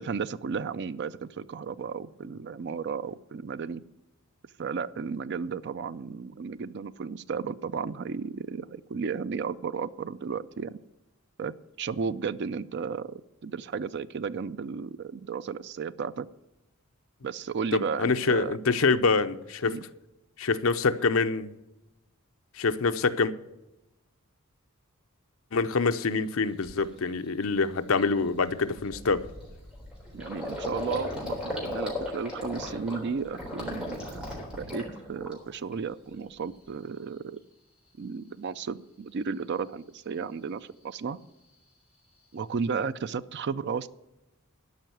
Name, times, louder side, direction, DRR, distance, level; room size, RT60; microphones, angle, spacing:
voice 1, 0.0-3.8 4.6-10.8 11.4-16.3 17.2-18.6 19.6-19.8 30.1-37.4 38.0-41.2 42.3-43.9, right 5 dB, 55° right, 0.4 m, -34 dB
voice 2, 17.7-19.8 20.4-21.5 22.5-23.3 25.5-29.3, left 4 dB, 70° left, 0.7 m, -25 dB
Gurgling, 26.6-26.9 27.3-27.4 27.7-35.7 36.1-36.7, left 1 dB, 5° right, 3.7 m, -37 dB
12.5 x 5.5 x 9.1 m
head